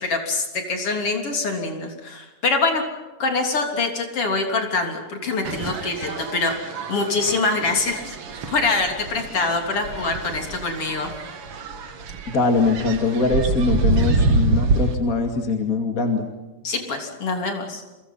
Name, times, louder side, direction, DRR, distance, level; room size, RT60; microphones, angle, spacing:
voice 1, 0.0-2.8 3.2-6.5 6.9-8.2 8.5-11.1 16.6-17.8, left 3 dB, 50° left, 3 dB, 4.2 m, -24 dB
sound 1, 5.4-14.9, right 2 dB, 50° right, 2.6 m, -26 dB
voice 2, 12.3-16.2, left 3 dB, 30° left, 4 dB, 2.5 m, -22 dB
30.0 x 23.5 x 5.7 m, 1.2 s
omnidirectional pair, 3.5 m